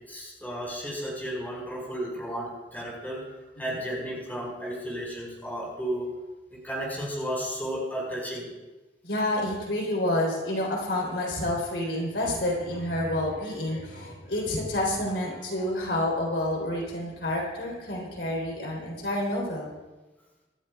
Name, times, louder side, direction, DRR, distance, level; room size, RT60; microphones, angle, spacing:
voice 1, 0.1-3.3 3.6-6.1 6.5-8.5, equal, 10° left, -4 dB, 4.9 m, -33 dB
voice 2, 9.0-19.7, left 1 dB, 75° left, -2 dB, 3.7 m, -29 dB
24.5 x 13.0 x 2.4 m, 1.2 s
head